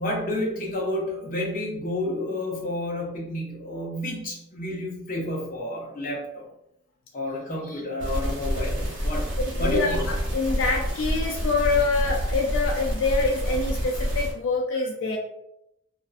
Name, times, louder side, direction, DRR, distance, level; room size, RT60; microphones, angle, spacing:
voice 1, 0.0-6.5 7.1-9.3 9.6-10.1, left 1 dB, 40° left, -3 dB, 0.7 m, -30 dB
sound 1, 8.0-14.3, equal, 65° right, 0.9 m, -28 dB
voice 2, 9.4-15.2, left 3 dB, 75° left, 0 dB, 0.3 m, -26 dB
2.5 x 2.3 x 2.4 m, 0.83 s
head